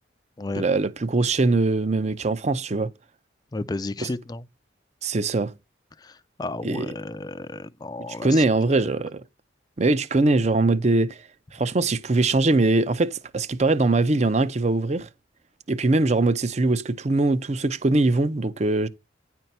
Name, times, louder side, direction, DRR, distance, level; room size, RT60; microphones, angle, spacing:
voice 1, 0.6-2.9 4.0-4.1 5.0-5.5 6.6-6.9 8.2-9.2 9.8-11.2 11.5-15.1 15.7-18.9, right 2 dB, 35° right, 0.5 m, -22 dB
voice 2, 3.5-4.5 6.0-8.7, left 2 dB, 20° left, 0.4 m, -33 dB
10.0 x 4.5 x 5.4 m
head